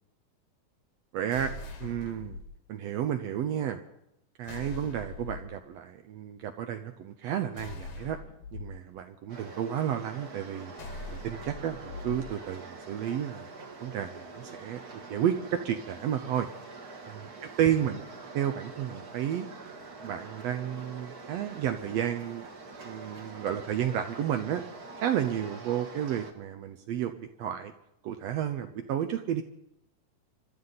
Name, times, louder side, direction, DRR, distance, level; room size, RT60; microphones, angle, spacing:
voice 1, 1.1-1.5 1.8-2.4 2.7-3.8 4.4-8.2 8.5-10.7 11.1-13.5 13.8-16.5 17.1-17.3 17.6-18.0 18.3-19.5 20.0-22.5 22.8-24.6 25.0-27.7 28.0-29.4, right 10 dB, 80° right, 7 dB, 1.5 m, -31 dB
sound 1, 1.3-2.4 4.4-5.5 7.6-8.6 10.8-12.2, left 3 dB, 85° left, 3.7 m, -41 dB
sound 2, 9.3-26.3, right 3 dB, 45° right, 1.2 m, -45 dB
26.5 x 13.0 x 4.1 m, 0.79 s
omnidirectional pair, 3.8 m